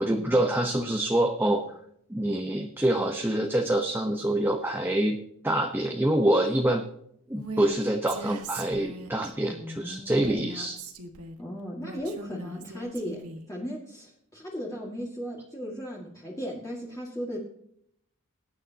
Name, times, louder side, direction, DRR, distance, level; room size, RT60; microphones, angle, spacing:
voice 1, 0.0-1.7 2.1-5.2 5.4-6.8 7.3-10.8, right 1 dB, 10° right, 3 dB, 1.0 m, -26 dB
Female speech woman speaking, 7.4-7.7 8.1-9.3 10.2-11.4 11.8-13.5, right 2 dB, 90° right, 1.9 m, -40 dB
voice 2, 9.5-10.3 11.4-17.4, equal, 15° left, -4 dB, 2.1 m, -37 dB
21.5 x 9.7 x 2.9 m, 0.70 s
head